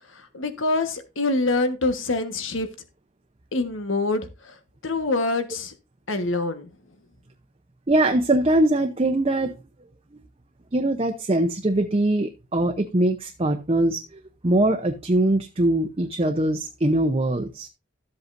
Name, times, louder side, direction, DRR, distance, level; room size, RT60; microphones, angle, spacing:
voice 1, 0.1-2.7 3.5-4.6 4.8-5.7 6.1-6.7, left 2 dB, 90° left, 1.4 m, -25 dB
voice 2, 7.9-9.5 10.7-14.0 14.4-17.7, right 1 dB, 30° right, 0.8 m, -22 dB
13.0 x 8.0 x 2.6 m
head